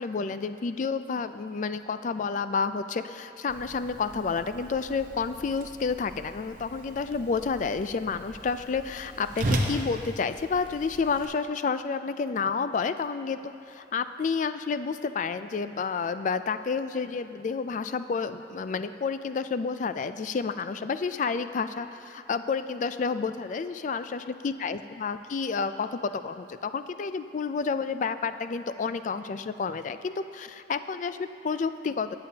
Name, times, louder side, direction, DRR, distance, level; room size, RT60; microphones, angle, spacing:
voice 1, 0.0-32.2, left 5 dB, 45° left, 11 dB, 0.3 m, -30 dB
Whoosh swoosh swish, 3.5-11.3, right 1 dB, 50° right, 0.9 m, -36 dB
20.0 x 6.9 x 2.8 m, 2.9 s
head